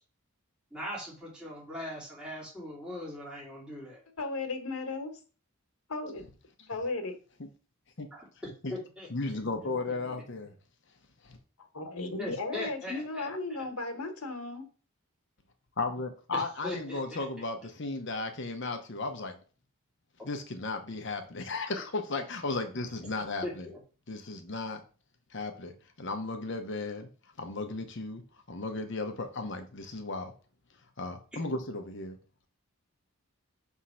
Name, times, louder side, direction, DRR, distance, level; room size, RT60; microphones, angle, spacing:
voice 1, 0.7-4.0 8.1-9.3 12.2-13.3 16.3-17.2 23.4-23.8, left 1 dB, 5° right, 2.7 m, -40 dB
voice 2, 4.2-5.1 5.9-6.2 6.7-7.1 11.7-14.6, left 3 dB, 85° left, 1.4 m, -35 dB
voice 3, 9.1-10.5 11.2-11.4 15.8-19.4 20.2-23.7 24.1-24.8 25.3-27.1 27.4-28.2 28.5-30.3 31.0-32.2, left 3 dB, 55° left, 0.9 m, -35 dB
6.3 x 3.7 x 5.6 m
head